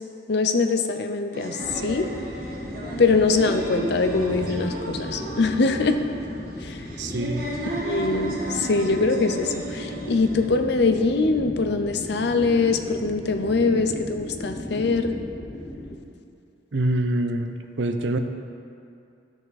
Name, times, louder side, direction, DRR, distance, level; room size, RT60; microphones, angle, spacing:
voice 1, 0.3-2.1 3.0-6.0 6.6-6.8 7.8-15.2, left 3 dB, 65° left, 7 dB, 0.7 m, -23 dB
sound 1, 1.3-10.5, right 1 dB, 55° right, 1.6 m, -34 dB
sound 2, 1.6-16.0, left 1 dB, 15° left, 0.7 m, -36 dB
voice 2, 7.0-7.5 16.7-18.2, right 1 dB, 75° right, 7 dB, 0.7 m, -25 dB
12.5 x 6.7 x 4.2 m, 2.6 s
head